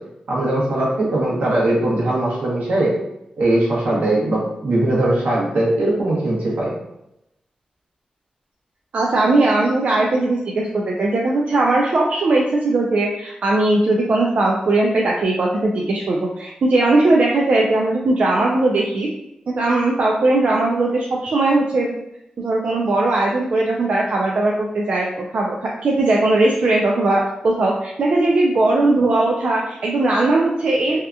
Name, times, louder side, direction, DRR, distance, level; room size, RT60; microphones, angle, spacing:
voice 1, 0.3-2.9 3.4-6.7, right 1 dB, 80° right, -5 dB, 0.9 m, -20 dB
voice 2, 8.9-19.1 19.5-21.9 22.4-25.6 25.8-31.0, right 2 dB, 60° right, -2 dB, 0.3 m, -19 dB
2.7 x 2.4 x 2.2 m, 0.84 s
wide cardioid pair, 95°, 3 cm